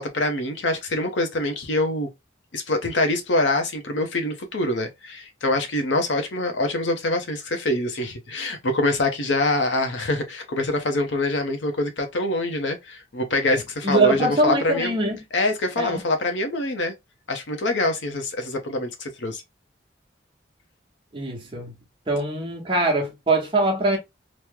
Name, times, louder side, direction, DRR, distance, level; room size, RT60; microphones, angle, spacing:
voice 1, 0.0-2.1 2.5-15.0 15.3-16.9 17.3-19.4, left 2 dB, 80° left, 0.7 m, -25 dB
voice 2, 13.5-15.2 15.8-16.0 21.1-21.8 22.1-24.0, right 2 dB, 30° right, 0.9 m, -23 dB
3.0 x 2.1 x 3.5 m
head